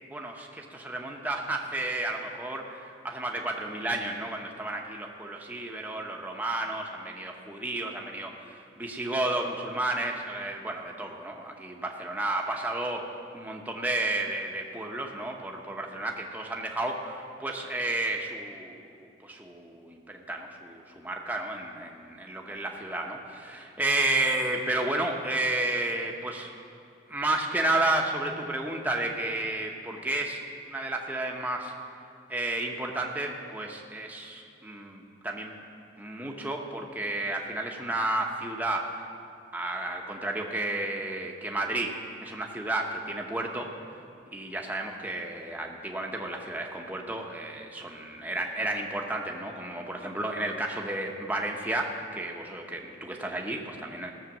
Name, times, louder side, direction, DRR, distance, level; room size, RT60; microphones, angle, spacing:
voice 1, 0.0-13.0 13.3-26.5 27.1-30.4 30.7-31.7 32.3-35.5 36.0-39.1 39.5-41.9 42.2-43.7 44.3-54.1, right 2 dB, 10° right, 0 dB, 0.9 m, -32 dB
17.0 x 6.6 x 7.2 m, 2.4 s
head